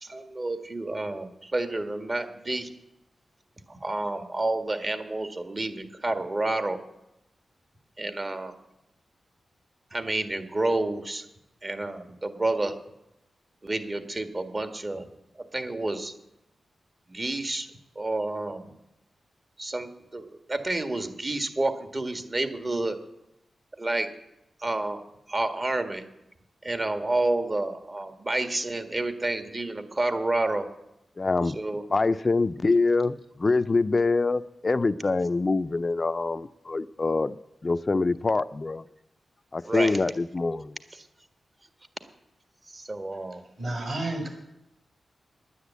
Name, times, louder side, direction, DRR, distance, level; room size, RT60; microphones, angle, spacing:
voice 1, 0.0-2.7 3.7-6.8 8.0-8.5 9.9-11.2 11.6-12.7 13.6-15.0 15.3-16.1 17.1-17.7 17.9-18.8 19.6-23.0 23.8-24.1 24.6-26.0 26.6-30.7 31.5-31.8 39.6-40.0 42.7-43.4, right 2 dB, 40° right, 8 dB, 1.7 m, -29 dB
voice 2, 31.2-31.6 31.9-37.4 37.6-38.9 39.5-40.8, left 3 dB, 45° left, 13 dB, 0.5 m, -25 dB
voice 3, 43.6-44.3, right 2 dB, 55° right, 3 dB, 5.4 m, -30 dB
10.0 x 9.9 x 8.3 m, 0.88 s
cardioid pair, 45°, 0 cm